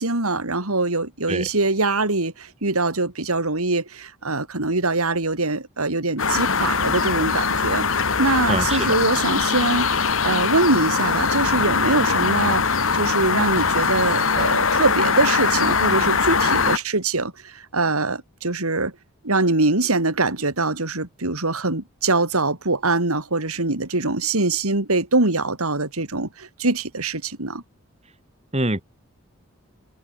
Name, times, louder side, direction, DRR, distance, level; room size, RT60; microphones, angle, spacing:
voice 1, 0.0-7.9 8.2-12.6 12.9-18.9 19.2-27.6, right 3 dB, 85° right, 3.3 m, -23 dB
sound 1, 6.2-16.8, left 5 dB, 70° left, 2.2 m, -21 dB
voice 2, 8.5-9.0 28.5-28.8, right 2 dB, 30° right, 3.5 m, -24 dB
head